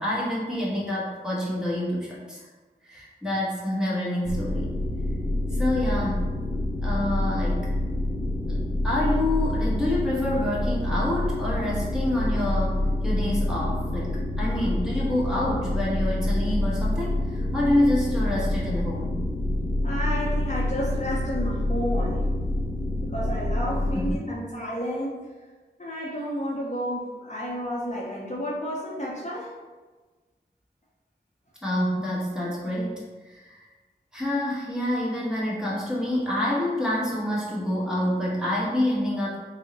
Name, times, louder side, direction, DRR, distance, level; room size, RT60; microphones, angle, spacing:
voice 1, 0.0-2.5 2.8-4.7 5.5-6.3 6.8-7.7 8.5-19.2 23.7-24.2 31.6-33.6 34.1-39.4, left 1 dB, 5° right, -7 dB, 1.2 m, -27 dB
sound 1, 4.3-24.1, left 1 dB, 75° left, 0.6 m, -27 dB
voice 2, 19.8-22.3 23.0-25.2 25.8-29.5, equal, 40° left, -5 dB, 0.7 m, -31 dB
3.6 x 2.1 x 4.0 m, 1.3 s
wide cardioid pair, 50°, 18 cm